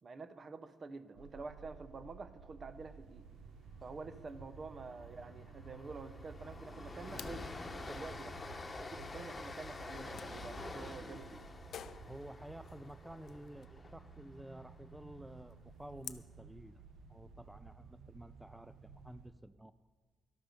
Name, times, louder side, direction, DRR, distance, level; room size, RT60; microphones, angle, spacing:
voice 1, 0.0-3.3 3.8-8.4 8.8-11.5, right 3 dB, 40° right, 12 dB, 0.8 m, -48 dB
sound 1, 1.2-19.3, right 5 dB, 75° right, 0.8 m, -54 dB
Train, 3.7-3.9 4.2-4.4 4.7-14.9, left 3 dB, 25° left, 1.1 m, -48 dB
sound 2, 6.0-16.3, left 9 dB, 65° left, 0.5 m, -55 dB
voice 2, 12.1-16.8 17.1-19.8, right 1 dB, 5° right, 13 dB, 0.3 m, -52 dB
12.5 x 12.0 x 5.2 m, 1.4 s
cardioid pair, 90°, 0 cm